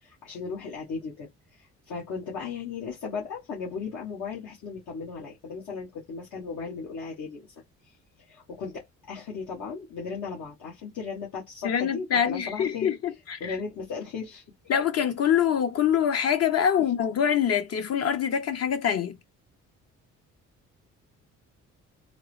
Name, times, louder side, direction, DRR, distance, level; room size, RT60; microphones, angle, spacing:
voice 1, 0.0-7.5 8.3-12.9 13.4-14.4, left 5 dB, 75° left, 1.4 m, -36 dB
voice 2, 11.6-13.6 14.7-19.2, left 8 dB, 55° left, 0.8 m, -25 dB
3.7 x 2.0 x 3.1 m
cardioid pair, 90°, 30 cm